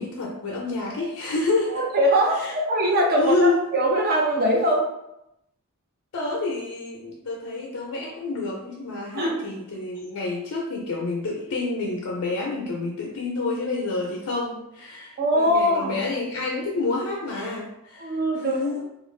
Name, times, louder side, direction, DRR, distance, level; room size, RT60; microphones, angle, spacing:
voice 1, 0.0-1.8 2.4-2.5 3.2-3.6 6.1-18.2 18.4-18.8, left 3 dB, 70° left, -2 dB, 0.5 m, -28 dB
voice 2, 1.7-4.9 9.1-9.4 15.2-16.0 18.0-18.7, right 1 dB, 45° right, 0 dB, 0.5 m, -22 dB
2.5 x 2.4 x 3.1 m, 0.84 s
head